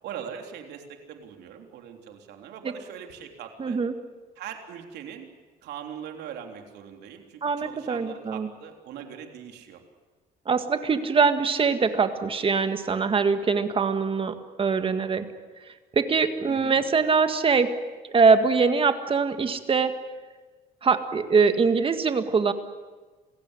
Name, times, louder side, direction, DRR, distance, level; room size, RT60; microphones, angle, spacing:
voice 1, 0.0-3.8 4.4-5.3 5.6-9.8 16.5-16.8, right 8 dB, 80° right, 4 dB, 3.5 m, -41 dB
voice 2, 3.6-3.9 7.4-8.5 10.5-15.3 15.6-17.8 18.1-20.0 20.8-22.5, right 5 dB, 30° right, 8 dB, 1.8 m, -23 dB
27.0 x 16.5 x 9.9 m, 1.3 s
cardioid pair, 110°, 17 cm